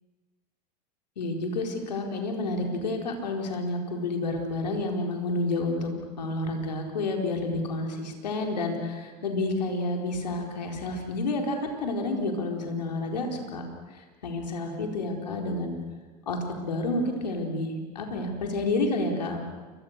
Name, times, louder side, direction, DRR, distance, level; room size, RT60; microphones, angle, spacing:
voice 1, 1.2-5.9 6.2-13.6 13.9-15.7 16.3-19.4, left 2 dB, 80° left, 2 dB, 4.4 m, -30 dB
29.0 x 24.5 x 6.7 m, 1.4 s
hypercardioid pair, 80°, 21 cm